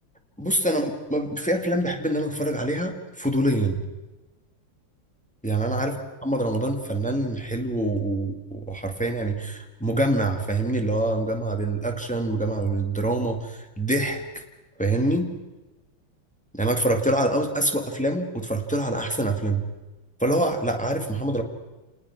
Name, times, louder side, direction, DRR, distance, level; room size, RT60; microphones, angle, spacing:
voice 1, 0.4-3.8 5.4-5.9 6.2-14.4 14.8-15.3 16.5-19.6 20.2-21.4, right 1 dB, 5° left, 3 dB, 1.8 m, -25 dB
28.5 x 19.5 x 6.0 m, 1.1 s
omnidirectional pair, 2.1 m